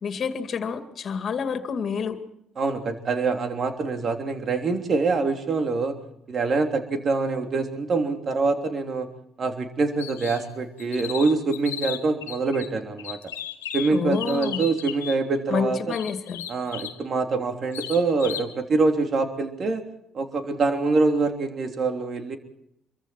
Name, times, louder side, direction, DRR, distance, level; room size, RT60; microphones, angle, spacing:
voice 1, 0.0-2.2 13.9-14.7 15.5-16.4, left 6 dB, 50° left, 8 dB, 2.3 m, -28 dB
voice 2, 2.6-6.0 6.3-9.1 9.4-13.2 13.7-15.9 16.5-19.8 20.1-22.4, right 3 dB, 50° right, 5 dB, 3.3 m, -25 dB
sound 1, 10.0-10.4 10.8-12.7 13.0-15.2 15.9-17.0 17.7-18.5, left 10 dB, 85° left, 1.1 m, -35 dB
26.0 x 23.5 x 4.5 m, 0.78 s
hypercardioid pair, 45°, 0 cm